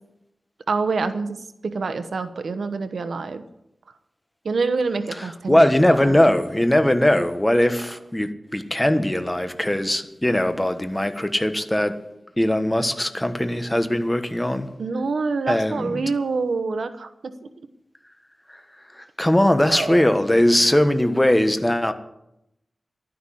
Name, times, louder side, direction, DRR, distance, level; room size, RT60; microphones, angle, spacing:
voice 1, 0.7-3.4 4.4-6.3 14.8-17.3 19.7-20.1, right 4 dB, 85° right, 10 dB, 1.1 m, -26 dB
voice 2, 5.1-12.0 12.4-14.7 15.5-16.0 18.5-18.6 18.9-21.9, left 1 dB, 10° left, 8 dB, 1.4 m, -20 dB
12.5 x 10.0 x 8.6 m, 0.83 s
wide cardioid pair, 80°, 0 cm